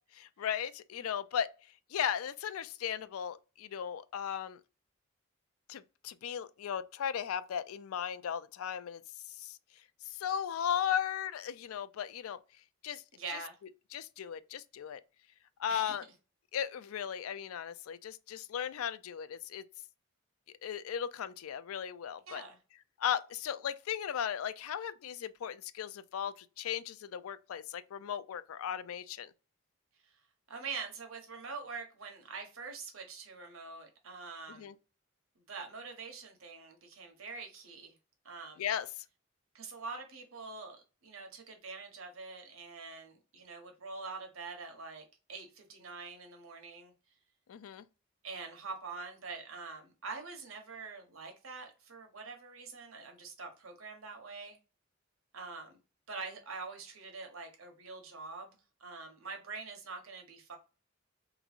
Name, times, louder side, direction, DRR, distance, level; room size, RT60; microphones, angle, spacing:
voice 1, 0.4-1.5 1.9-4.6 5.7-9.0 9.4-9.6 10.1-12.4 12.8-13.0 13.9-15.0 15.6-16.0 16.5-19.6 20.6-22.4 23.0-29.3 34.6-34.7 38.6-38.9 47.5-47.8, left 9 dB, 90° left, 0.4 m, -36 dB
voice 2, 13.1-13.5 15.7-16.0 22.3-22.6 30.0-30.1 30.5-34.7 35.5-37.9 38.2-38.6 39.5-46.9 48.2-54.6 55.3-55.8 56.1-58.5 58.8-60.6, right 4 dB, 80° right, 1.0 m, -45 dB
3.5 x 3.0 x 2.5 m
head